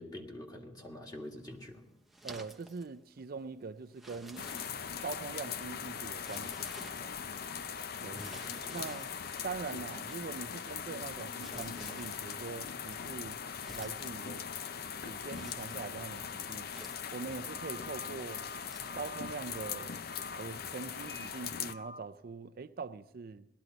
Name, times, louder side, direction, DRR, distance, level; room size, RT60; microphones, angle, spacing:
voice 1, 0.0-1.8 8.1-8.8, left 1 dB, 25° left, 1.9 m, -46 dB
sound 1, 1.2-19.0, right 2 dB, ahead, 0.7 m, -55 dB
voice 2, 2.2-4.5 5.0-7.1 8.0-8.2 8.7-9.1 9.4-13.4 13.7-14.4 15.0-16.7 17.1-18.4 18.9-20.0 20.4-23.5, right 4 dB, 55° right, 0.4 m, -43 dB
sound 2, 4.4-21.7, left 7 dB, 60° left, 0.5 m, -40 dB
Telephone, 17.5-20.4 21.0-21.3 21.7-22.0, left 2 dB, 90° left, 1.9 m, -48 dB
18.5 x 12.5 x 4.0 m
head